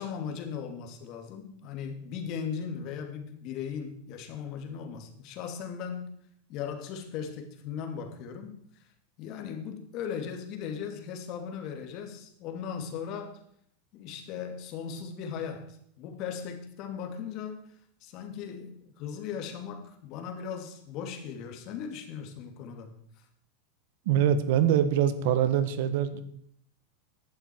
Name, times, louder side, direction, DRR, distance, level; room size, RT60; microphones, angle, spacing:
voice 1, 0.0-6.1 6.5-8.6 9.2-13.4 13.9-17.6 18.0-23.3, left 7 dB, 45° left, 2.5 m, -38 dB
voice 2, 24.0-26.2, right 9 dB, 65° right, 1.5 m, -24 dB
15.0 x 11.5 x 4.6 m
supercardioid pair, 145°, 0 cm